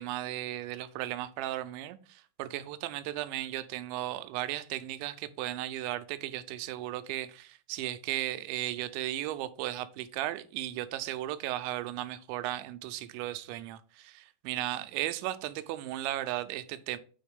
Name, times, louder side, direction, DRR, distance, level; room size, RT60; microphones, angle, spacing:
voice 1, 0.0-17.0, right 14 dB, 85° right, 3.0 m, -36 dB
9.3 x 5.0 x 3.5 m
omnidirectional pair, 5.2 m